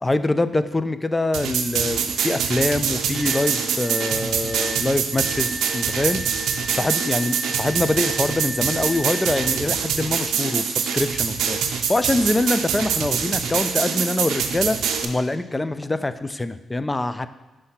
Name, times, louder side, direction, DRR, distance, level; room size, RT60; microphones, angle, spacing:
voice 1, 0.0-6.2 6.7-11.6 11.9-17.3, left 2 dB, 20° left, 12 dB, 0.3 m, -24 dB
sound 1, 1.3-15.0, right 7 dB, 90° right, 0.4 m, -25 dB
sound 2, 3.1-9.5, right 2 dB, 20° right, 1.4 m, -36 dB
5.7 x 3.3 x 5.7 m, 1.1 s
cardioid pair, 80°, 0 cm